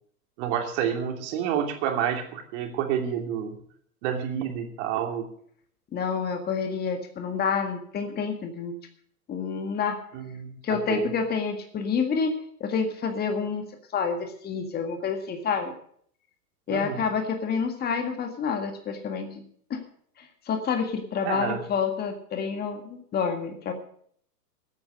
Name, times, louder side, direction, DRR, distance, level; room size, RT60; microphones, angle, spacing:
voice 1, 0.4-3.6 4.0-5.3 10.1-11.1 16.7-17.1 21.2-21.6, right 9 dB, 45° right, 4 dB, 2.8 m, -29 dB
voice 2, 5.9-8.8 9.3-10.0 10.6-12.3 12.6-13.6 13.9-15.7 16.7-19.3 19.7-19.8 20.2-23.7, left 6 dB, 20° left, 6 dB, 1.9 m, -28 dB
15.0 x 9.1 x 6.6 m, 0.62 s
figure-of-eight pair, 110°, 49 cm